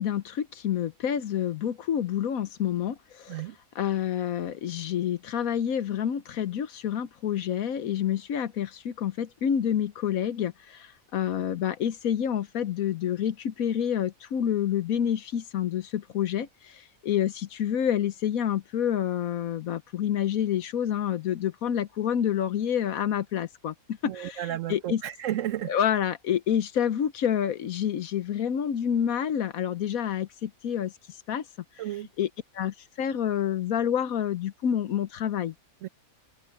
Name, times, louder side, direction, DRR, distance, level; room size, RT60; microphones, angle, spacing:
voice 1, 0.0-3.4 3.7-25.0 25.7-30.9 31.3-31.4 32.2-32.3 32.5-35.5, left 9 dB, 70° left, 1.2 m, -28 dB
voice 2, 24.0-25.7 31.8-32.1 35.8-35.9, right 13 dB, 70° right, 0.9 m, -32 dB
omnidirectional pair, 1.6 m